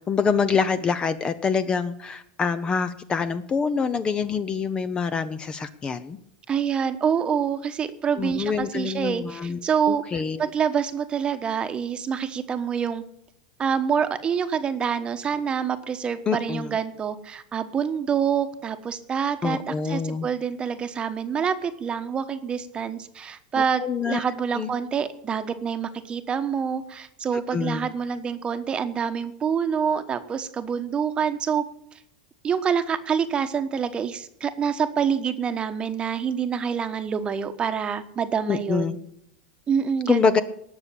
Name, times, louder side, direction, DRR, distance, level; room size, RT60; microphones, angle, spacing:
voice 1, 0.1-6.2 8.2-10.4 16.3-16.7 19.4-20.3 23.8-24.2 24.6-24.7 27.5-27.9 38.5-39.0 40.1-40.4, left 5 dB, 20° left, 13 dB, 0.8 m, -25 dB
voice 2, 6.5-13.0 13.6-31.6 31.9-32.0 32.4-39.0 39.7-40.4, right 7 dB, 25° right, 9 dB, 1.2 m, -26 dB
19.0 x 6.8 x 8.5 m, 0.72 s
supercardioid pair, 135°, 4 cm